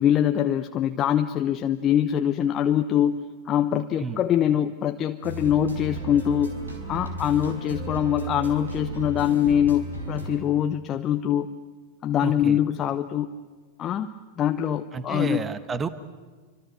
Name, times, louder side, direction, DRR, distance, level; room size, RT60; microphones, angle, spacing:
voice 1, 0.0-11.5 12.0-13.3 13.8-14.1 14.4-15.4, left 10 dB, 30° left, 7 dB, 1.0 m, -24 dB
sound 1, 5.2-10.4, right 2 dB, 75° right, 4.8 m, -34 dB
voice 2, 12.2-12.6 14.9-15.9, right 5 dB, 20° right, 14 dB, 1.2 m, -30 dB
28.5 x 25.5 x 8.1 m, 1.5 s
figure-of-eight pair, 90°, 0 cm